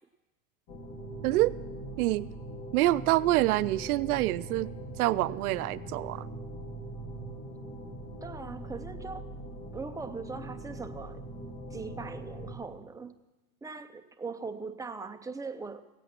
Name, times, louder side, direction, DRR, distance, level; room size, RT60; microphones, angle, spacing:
sound 1, 0.7-12.5, right 1 dB, 40° left, 2.4 m, -41 dB
voice 1, 1.2-1.5 2.0-2.3 2.7-4.7 5.0-6.3, right 17 dB, 90° right, 16 dB, 0.5 m, -26 dB
voice 2, 8.2-9.2 9.7-11.2 11.7-13.1 13.6-15.9, right 4 dB, 10° right, 7 dB, 0.6 m, -40 dB
16.5 x 8.4 x 6.0 m, 1.1 s
supercardioid pair, 115°, 43 cm